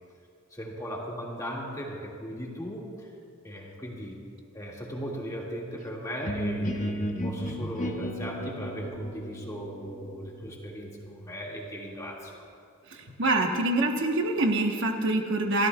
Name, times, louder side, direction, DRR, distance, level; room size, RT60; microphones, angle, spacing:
voice 1, 0.5-3.1 3.4-4.2 4.5-12.5, equal, 15° left, -3 dB, 2.0 m, -38 dB
sound 1, 6.2-11.9, equal, 35° left, 0.9 m, -34 dB
voice 2, 12.9-15.7, right 2 dB, 55° right, 2 dB, 1.1 m, -25 dB
29.0 x 13.5 x 2.3 m, 2.4 s
head